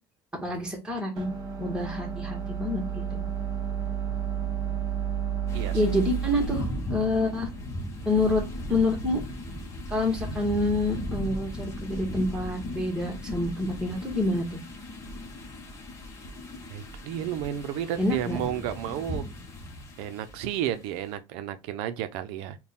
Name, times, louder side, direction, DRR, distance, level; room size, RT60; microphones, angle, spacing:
voice 1, 0.4-1.3 1.6-3.2 5.7-7.5 8.0-8.4 8.7-9.2 9.9-14.6 18.0-18.4, left 2 dB, 10° right, 1.3 m, -27 dB
sound 1, 1.2-8.2, right 8 dB, 35° right, 1.1 m, -32 dB
sound 2, 5.5-20.8, left 1 dB, 30° left, 0.9 m, -37 dB
voice 2, 5.5-5.8 16.7-19.3 20.0-22.6, right 10 dB, 85° right, 0.6 m, -32 dB
3.6 x 2.3 x 4.1 m
cardioid pair, 145°, 10 cm